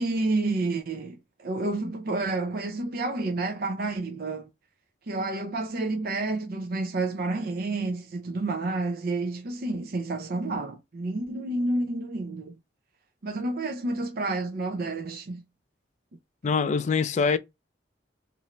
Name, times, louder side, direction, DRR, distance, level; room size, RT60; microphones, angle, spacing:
voice 1, 0.0-4.5 5.1-12.5 13.2-15.4, right 2 dB, 55° right, 0.5 m, -29 dB
voice 2, 16.4-17.4, left 5 dB, 40° left, 0.3 m, -24 dB
3.0 x 2.6 x 3.1 m
head